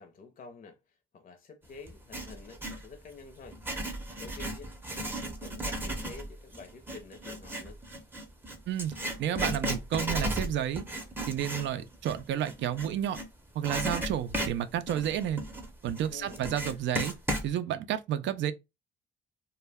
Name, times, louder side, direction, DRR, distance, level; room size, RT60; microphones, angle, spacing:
voice 1, 0.0-3.6 4.2-4.8 5.1-7.8 16.1-16.4, left 4 dB, 45° left, 0.6 m, -49 dB
Writing, 1.9-2.9 3.5-13.3 13.6-17.5, right 1 dB, 10° right, 0.6 m, -35 dB
voice 2, 8.7-10.8 11.3-13.2 13.6-15.4 15.8-17.1 17.4-18.5, right 10 dB, 70° right, 0.4 m, -31 dB
2.2 x 2.1 x 3.3 m
cardioid pair, 90°, 20 cm